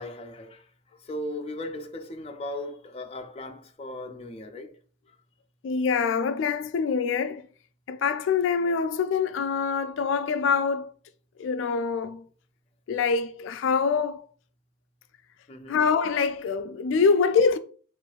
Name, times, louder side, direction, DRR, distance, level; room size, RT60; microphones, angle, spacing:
voice 1, 0.0-4.8 15.5-15.8, left 1 dB, 35° left, 0.5 m, -37 dB
voice 2, 5.6-7.5 7.9-10.9 11.4-12.2 12.9-14.2 15.7-17.6, left 5 dB, 90° left, 0.3 m, -25 dB
6.0 x 2.5 x 2.3 m
head